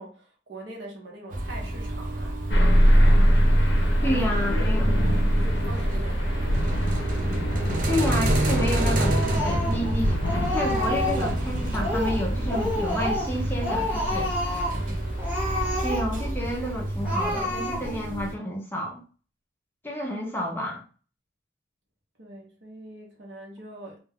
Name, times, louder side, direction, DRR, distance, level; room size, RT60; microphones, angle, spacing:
voice 1, 0.0-2.4 3.0-3.3 3.9-7.0 14.7-15.1 22.2-24.0, right 1 dB, 70° right, 0.8 m, -43 dB
sound 1, 1.3-18.3, right 1 dB, 45° right, 0.4 m, -29 dB
sound 2, 2.5-15.8, equal, 70° left, 0.5 m, -25 dB
voice 2, 4.0-4.9 7.8-14.3 15.8-19.0 19.8-20.8, equal, 10° left, 0.5 m, -30 dB
Speech, 9.0-9.9 10.2-11.4 11.7-12.2 12.5-13.3 13.6-14.8 15.2-16.3 16.6-16.7 17.0-18.1, left 1 dB, 10° right, 0.8 m, -29 dB
2.2 x 2.1 x 3.3 m
head